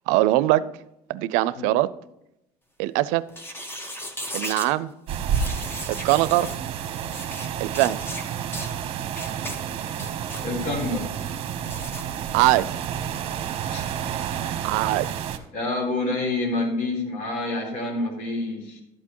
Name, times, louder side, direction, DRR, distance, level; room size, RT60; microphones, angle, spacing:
voice 1, 0.1-0.6 1.1-1.9 2.8-3.2 4.3-4.9 6.0-6.5 7.6-8.0 12.3-12.9 14.6-15.2, right 17 dB, 85° right, 0.5 m, -21 dB
sound 1, 3.3-4.7 5.3-6.6 7.1-7.5 7.7-8.2 8.5-8.7 9.1-9.6 9.9-10.5 11.7-12.0, equal, 20° left, 1.3 m, -36 dB
sound 2, 5.1-15.4, right 8 dB, 50° right, 0.9 m, -30 dB
voice 2, 10.4-11.1 13.7-13.9 15.5-18.8, left 2 dB, 75° left, 4.0 m, -27 dB
12.0 x 8.4 x 3.0 m
cardioid pair, 120°, 12 cm